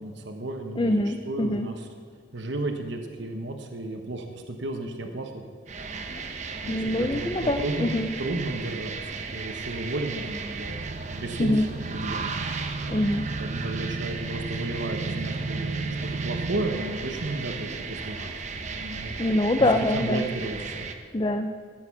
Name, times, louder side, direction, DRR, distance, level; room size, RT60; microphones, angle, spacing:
voice 1, 0.0-1.9 2.3-5.4 6.6-7.9 8.2-9.0 9.3-11.6 11.9-12.4 13.3-19.1 19.6-20.9, right 2 dB, 70° right, 4 dB, 1.1 m, -33 dB
voice 2, 0.8-1.7 6.2-6.3 6.7-8.1 11.4-11.7 12.9-13.2 19.2-20.3 21.1-21.5, left 1 dB, 25° left, 6 dB, 0.5 m, -24 dB
sound 1, 5.7-20.9, right 4 dB, 40° right, 0.9 m, -36 dB
sound 2, 10.7-16.8, right 3 dB, 85° right, 0.7 m, -34 dB
14.5 x 7.8 x 6.1 m, 2.1 s
head